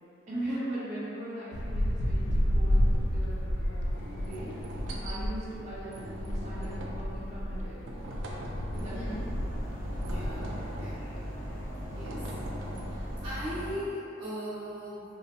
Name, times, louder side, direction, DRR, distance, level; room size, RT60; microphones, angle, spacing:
voice 1, 0.3-4.5 5.0-8.0 8.6-9.2, right 1 dB, 40° right, -9 dB, 0.8 m, -40 dB
sound 1, 1.5-13.5, equal, 80° left, 0.4 m, -32 dB
sound 2, 2.9-3.1 3.9-5.2 5.9-7.1 7.9-9.1 9.8-11.0 11.8-13.2, equal, 85° right, 0.4 m, -41 dB
sound 3, 8.7-13.7, equal, 45° left, 1.2 m, -39 dB
voice 2, 10.0-10.4 10.8-11.0 12.0-12.2 12.8-15.0, equal, 25° right, -13 dB, 0.4 m, -38 dB
3.0 x 2.0 x 2.7 m, 2.7 s
head